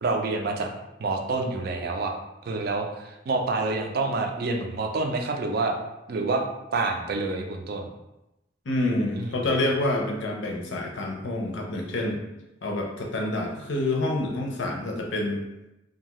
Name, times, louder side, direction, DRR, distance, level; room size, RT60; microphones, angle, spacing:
voice 1, 0.0-0.7 1.0-2.1 2.4-5.8 6.1-6.4 6.7-7.9 9.1-9.3, right 3 dB, 55° right, 3 dB, 0.4 m, -27 dB
voice 2, 8.7-12.2 12.6-15.4, left 1 dB, 75° left, 0 dB, 0.6 m, -27 dB
2.7 x 2.3 x 3.0 m, 0.94 s
head